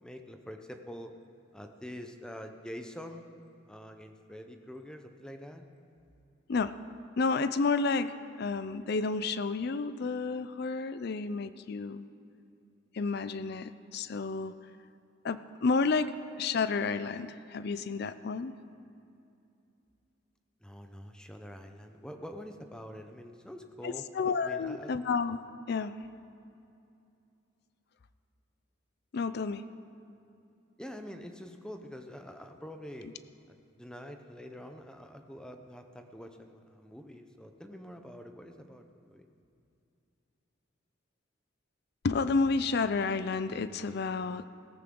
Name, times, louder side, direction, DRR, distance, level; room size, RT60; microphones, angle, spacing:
voice 1, 0.0-1.1 1.5-3.3 3.7-5.6 20.6-24.1 24.4-24.9 30.8-33.1 33.8-39.3, equal, 5° left, 5 dB, 0.7 m, -45 dB
voice 2, 7.2-12.0 12.9-14.5 15.2-16.1 16.4-18.5 23.8-25.4 25.7-25.9 29.1-29.6 42.0-44.5, left 4 dB, 50° left, 13 dB, 0.4 m, -30 dB
18.0 x 14.5 x 3.8 m, 2.6 s
head